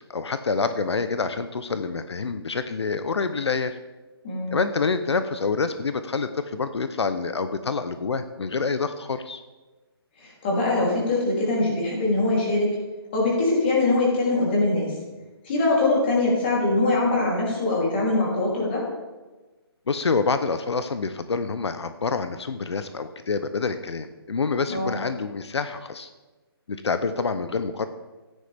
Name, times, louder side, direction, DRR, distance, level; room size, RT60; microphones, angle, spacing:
voice 1, 0.0-3.8 4.5-9.4 19.9-26.1 26.7-27.9, left 4 dB, 90° left, 10 dB, 0.8 m, -27 dB
voice 2, 4.2-4.6 10.2-12.8 13.1-15.0 15.4-18.9 24.7-24.9, left 2 dB, 25° left, -4 dB, 3.1 m, -22 dB
14.0 x 9.8 x 3.5 m, 1.2 s
hypercardioid pair, 175°, 14 cm